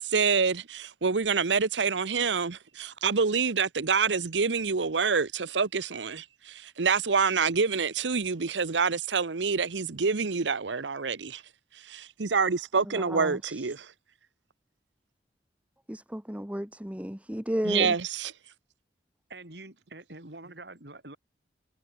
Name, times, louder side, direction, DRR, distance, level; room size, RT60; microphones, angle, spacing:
voice 1, 0.0-11.4 11.8-13.9 17.6-18.3, right 5 dB, 90° right, 0.9 m, -27 dB
voice 2, 13.0-13.5 15.9-17.9, equal, 5° right, 1.3 m, -33 dB
voice 3, 19.3-21.2, right 2 dB, 65° right, 4.0 m, -45 dB
head